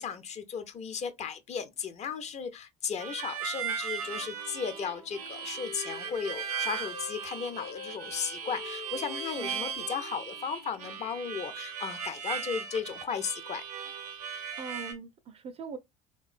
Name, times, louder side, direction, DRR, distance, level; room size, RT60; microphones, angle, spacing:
voice 1, 0.0-13.6, left 6 dB, 35° left, 0.5 m, -35 dB
Harmonica, 3.0-14.9, right 7 dB, 80° right, 0.6 m, -38 dB
Wind instrument woodwind instrument, 3.9-7.2 7.5-11.2, left 7 dB, 75° left, 0.9 m, -47 dB
voice 2, 9.4-9.7 14.6-15.8, right 5 dB, 30° right, 0.4 m, -41 dB
3.5 x 2.2 x 2.4 m
figure-of-eight pair, 60°, 19 cm